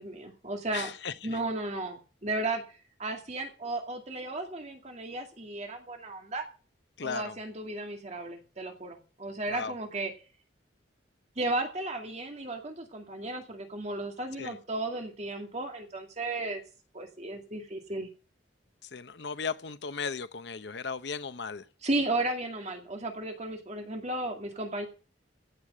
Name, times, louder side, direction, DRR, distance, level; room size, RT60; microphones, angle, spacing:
voice 1, 0.0-0.9 1.2-6.4 7.0-10.1 11.4-16.6 16.9-18.1 21.8-24.9, right 2 dB, 40° right, 2.2 m, -34 dB
voice 2, 0.7-1.4 7.0-7.4 9.5-9.7 14.4-14.6 18.8-21.7, left 5 dB, 65° left, 0.8 m, -36 dB
16.0 x 6.6 x 7.8 m
head